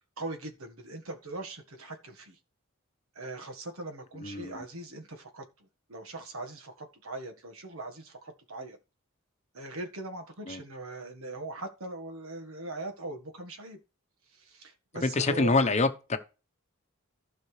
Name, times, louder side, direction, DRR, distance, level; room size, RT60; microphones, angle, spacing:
voice 1, 0.2-2.4 3.1-8.8 9.5-13.8 14.3-15.7, right 2 dB, 80° right, 1.5 m, -41 dB
voice 2, 4.2-4.6 10.5-10.6 15.0-16.2, left 3 dB, 35° left, 0.9 m, -26 dB
15.0 x 5.8 x 3.3 m
head